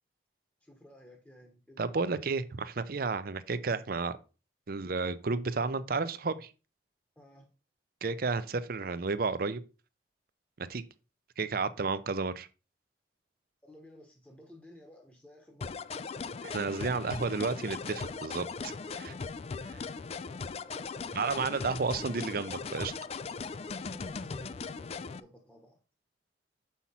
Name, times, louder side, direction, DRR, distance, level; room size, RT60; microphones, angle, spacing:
voice 1, 0.6-2.0 7.2-7.5 13.6-15.8 20.6-21.3 23.9-25.8, equal, 10° left, 1.1 m, -55 dB
voice 2, 1.8-4.2 4.7-6.5 8.0-9.6 10.6-10.8 11.4-12.5 16.4-19.1 19.7-19.8 21.1-22.9, right 4 dB, 55° right, 0.6 m, -32 dB
sound 1, 15.6-25.2, left 4 dB, 35° left, 0.3 m, -39 dB
7.3 x 5.7 x 4.2 m
head